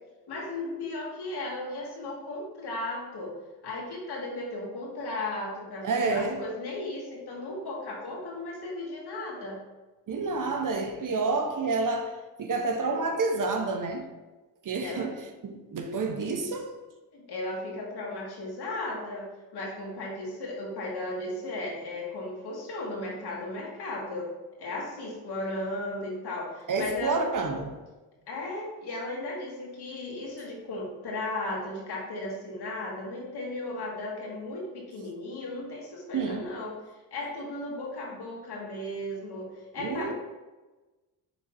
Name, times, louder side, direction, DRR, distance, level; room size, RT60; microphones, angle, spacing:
voice 1, 0.3-3.3 3.6-9.6 14.8-15.1 17.1-19.3 19.5-24.3 24.6-27.3 28.3-36.7 37.1-40.1, left 2 dB, 65° left, 2.1 m, -35 dB
voice 2, 5.8-6.5 10.1-14.1 14.6-16.8 26.7-27.7 36.1-36.5 39.8-40.1, right 3 dB, 45° right, 1.0 m, -29 dB
10.0 x 3.9 x 2.7 m
supercardioid pair, 55°, 42 cm